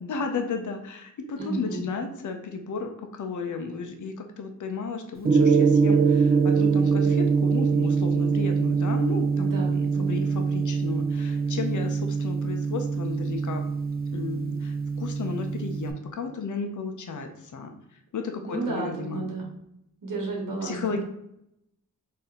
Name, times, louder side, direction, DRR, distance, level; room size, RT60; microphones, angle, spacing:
voice 1, 0.0-13.6 14.1-17.7 18.1-19.2 20.6-21.0, left 4 dB, 65° left, 5 dB, 0.6 m, -33 dB
voice 2, 1.4-1.8 9.3-10.3 18.4-19.5 20.0-20.8, right 3 dB, 85° right, -2 dB, 1.3 m, -32 dB
Gong, 5.2-15.9, right 5 dB, 30° right, 0.5 m, -24 dB
4.2 x 2.7 x 3.6 m, 0.80 s
wide cardioid pair, 105°, 32 cm